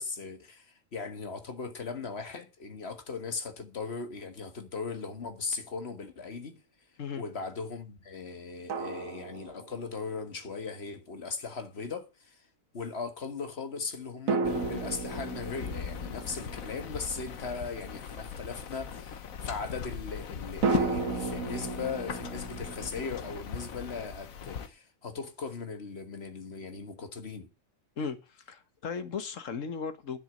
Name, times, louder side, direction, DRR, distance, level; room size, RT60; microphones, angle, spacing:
voice 1, 0.0-6.6 7.2-12.4 12.7-27.5, left 4 dB, 50° left, 1.8 m, -38 dB
sound 1, 5.1-5.2 8.7-10.2 14.3-17.9 20.6-23.4, right 4 dB, 85° right, 1.7 m, -34 dB
sound 2, 14.4-24.7, left 7 dB, 85° left, 1.5 m, -39 dB
voice 2, 28.0-30.2, left 5 dB, 70° left, 1.6 m, -36 dB
10.5 x 7.2 x 6.5 m
omnidirectional pair, 1.4 m